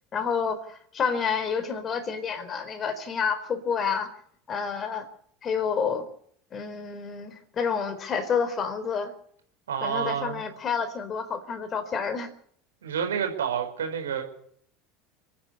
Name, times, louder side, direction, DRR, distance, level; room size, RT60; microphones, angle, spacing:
voice 1, 0.1-4.1 4.5-5.1 5.4-6.1 6.5-9.1 9.8-12.3, left 6 dB, 30° left, 10 dB, 4.0 m, -29 dB
voice 2, 9.7-10.4 12.8-14.2, right 8 dB, 70° right, 5 dB, 4.8 m, -29 dB
29.5 x 10.0 x 9.6 m, 0.66 s
figure-of-eight pair, 70°, 0 cm